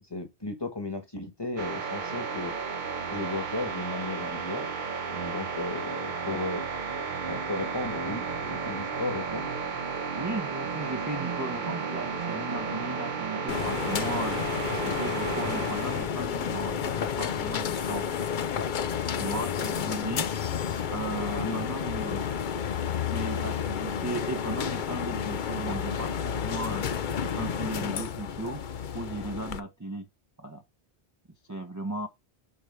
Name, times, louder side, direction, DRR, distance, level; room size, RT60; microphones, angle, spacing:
voice 1, 0.1-2.5 3.1-4.7 5.1-6.6 7.3-9.5 21.4-21.6, left 2 dB, 25° left, 1.5 m, -35 dB
sound 1, 1.6-16.1, right 5 dB, 50° right, 0.9 m, -33 dB
voice 2, 10.2-14.4 14.8-18.1 19.2-20.3 20.9-22.3 22.9-28.6 28.9-30.1 30.4-30.6 31.5-32.1, right 1 dB, 20° right, 0.8 m, -36 dB
sound 2, 13.5-29.6, left 7 dB, 55° left, 0.7 m, -31 dB
6.8 x 4.8 x 3.4 m
omnidirectional pair, 1.1 m